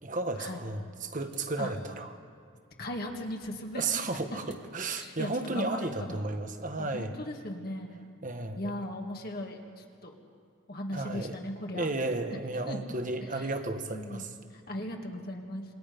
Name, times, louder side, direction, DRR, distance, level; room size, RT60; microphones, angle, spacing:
voice 1, 0.0-2.1 3.7-7.2 8.2-8.7 10.9-11.4 11.7-14.3, right 2 dB, 40° right, 7 dB, 1.4 m, -33 dB
sound 1, 1.2-2.1 4.4-4.5 5.6-6.2, right 1 dB, 55° right, 2.1 m, -53 dB
voice 2, 2.8-3.8 4.9-6.2 6.8-8.1 8.6-10.2 10.7-11.9 12.7-12.8 13.2-13.5 13.9-15.6, left 1 dB, 45° left, 1 dB, 2.1 m, -38 dB
27.0 x 23.5 x 5.3 m, 2.3 s
head